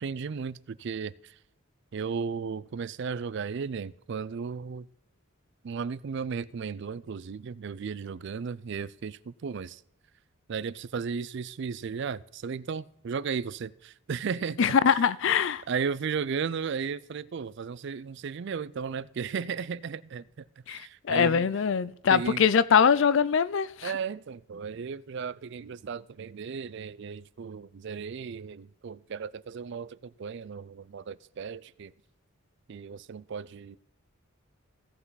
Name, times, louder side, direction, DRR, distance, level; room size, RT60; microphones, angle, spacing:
voice 1, 0.0-1.4 1.9-4.9 5.6-9.8 10.5-15.1 15.7-21.5 22.1-22.4 23.8-31.9 32.7-33.8, right 6 dB, 55° right, 0.3 m, -35 dB
voice 2, 14.6-15.6 20.7-23.9, left 7 dB, 55° left, 0.4 m, -23 dB
16.0 x 5.8 x 4.0 m
head